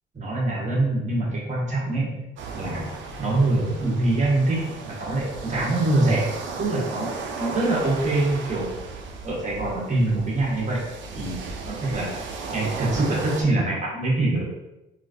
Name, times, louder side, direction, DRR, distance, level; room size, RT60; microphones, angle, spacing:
voice 1, 0.1-2.2 2.5-2.9 3.2-6.3 6.6-8.7 9.2-10.8 11.1-12.1 12.5-14.4, right 2 dB, 35° right, -4 dB, 1.3 m, -24 dB
sound 1, 2.4-13.4, right 4 dB, 70° right, 0.5 m, -35 dB
3.7 x 2.6 x 2.6 m, 0.96 s
cardioid pair, 90°, 20 cm